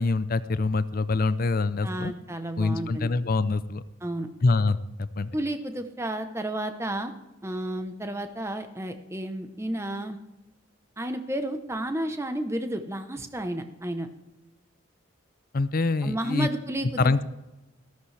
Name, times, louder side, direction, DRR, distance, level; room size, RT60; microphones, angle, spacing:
voice 1, 0.0-2.1 2.6-3.8 4.4-5.3 15.5-16.5 17.0-17.2, left 3 dB, 45° left, 15 dB, 0.5 m, -25 dB
voice 2, 1.8-3.1 4.0-4.3 5.3-7.1 7.4-10.2 11.0-14.1 16.0-17.2, right 1 dB, 15° right, 7 dB, 0.9 m, -32 dB
14.0 x 13.5 x 3.3 m, 1.0 s
head